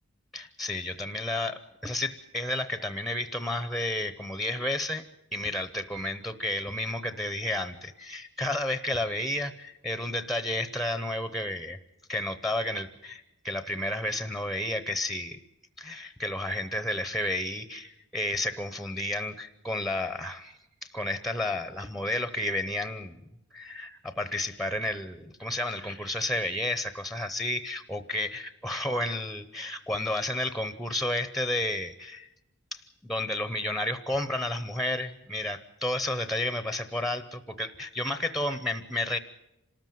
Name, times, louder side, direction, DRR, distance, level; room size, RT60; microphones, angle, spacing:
voice 1, 0.3-5.0 5.3-11.8 12.1-15.4 15.8-23.2 23.5-32.3 32.7-39.2, left 1 dB, ahead, 11 dB, 0.7 m, -31 dB
26.5 x 13.5 x 9.3 m, 0.87 s
head